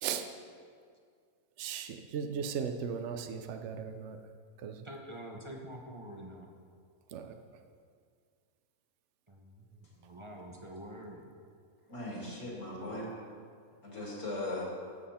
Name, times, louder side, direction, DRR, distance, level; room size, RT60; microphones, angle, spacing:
voice 1, 1.6-4.2 4.6-4.9 7.1-7.4, right 7 dB, 60° right, 7 dB, 0.9 m, -37 dB
voice 2, 4.8-6.5 9.3-11.3 13.0-13.5, right 1 dB, 25° right, 1 dB, 0.7 m, -47 dB
voice 3, 11.9-13.1 13.8-14.7, left 1 dB, 55° left, -4 dB, 2.8 m, -38 dB
13.0 x 7.4 x 4.3 m, 2.1 s
omnidirectional pair, 1.6 m